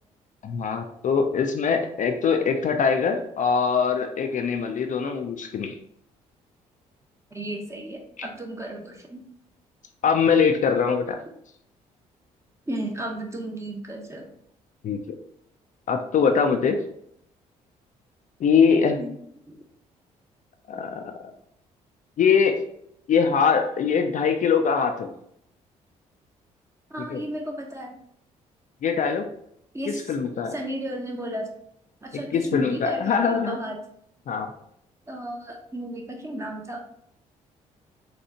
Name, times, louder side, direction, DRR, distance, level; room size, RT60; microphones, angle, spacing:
voice 1, 0.4-5.8 8.2-8.3 10.0-11.2 14.8-15.2 15.9-16.8 18.4-19.0 20.7-21.1 22.2-22.6 23.1-25.1 27.0-27.2 28.8-29.3 29.9-30.5 32.3-33.5 34.3-34.5, left 6 dB, 45° left, 5 dB, 0.4 m, -22 dB
voice 2, 7.3-9.2 12.7-14.3 19.0-19.1 19.5-19.6 26.9-28.0 29.7-30.1 30.5-31.5 32.0-33.8 35.1-36.8, right 1 dB, 15° right, 1 dB, 0.9 m, -34 dB
4.3 x 2.3 x 2.8 m, 0.71 s
hypercardioid pair, 45°, 18 cm